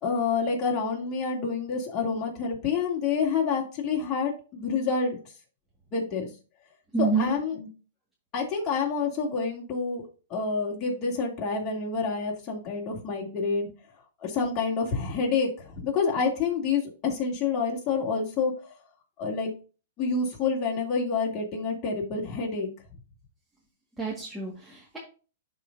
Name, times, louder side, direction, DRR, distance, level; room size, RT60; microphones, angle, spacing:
voice 1, 0.0-5.2 5.9-6.3 7.0-7.7 8.3-10.0 10.3-13.7 14.2-18.7 19.2-19.5 20.0-22.7, left 5 dB, 30° left, -2 dB, 2.7 m, -28 dB
voice 2, 6.9-7.3 24.0-25.0, right 5 dB, 5° right, -5 dB, 1.8 m, -28 dB
11.5 x 4.0 x 2.6 m, 0.35 s
hypercardioid pair, 135°, 0 cm